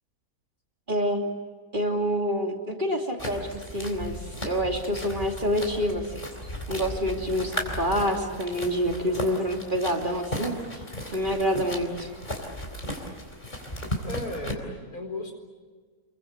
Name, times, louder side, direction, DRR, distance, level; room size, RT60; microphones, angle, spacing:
voice 1, 0.9-1.2 1.7-6.0 6.7-10.5 11.1-12.1, equal, 30° right, 2 dB, 3.0 m, -27 dB
sound 1, 3.2-14.5, equal, 30° left, 4.0 m, -36 dB
voice 2, 14.0-15.3, left 1 dB, 75° left, 4 dB, 4.9 m, -35 dB
28.5 x 23.5 x 8.0 m, 1.5 s
omnidirectional pair, 1.6 m